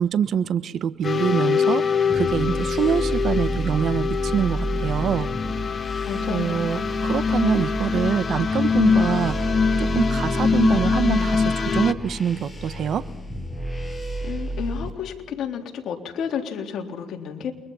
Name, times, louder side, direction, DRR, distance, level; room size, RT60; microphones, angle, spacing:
voice 1, 0.0-5.3 6.3-13.0, right 8 dB, 65° right, 14 dB, 1.2 m, -25 dB
sound 1, 1.0-11.9, left 5 dB, 45° left, 1.5 m, -23 dB
sound 2, 2.1-14.9, right 1 dB, 15° left, 6.8 m, -30 dB
voice 2, 6.0-6.7 14.2-17.5, left 7 dB, 75° left, 3 dB, 3.6 m, -31 dB
29.5 x 24.0 x 5.7 m, 0.98 s
cardioid pair, 90°, 0 cm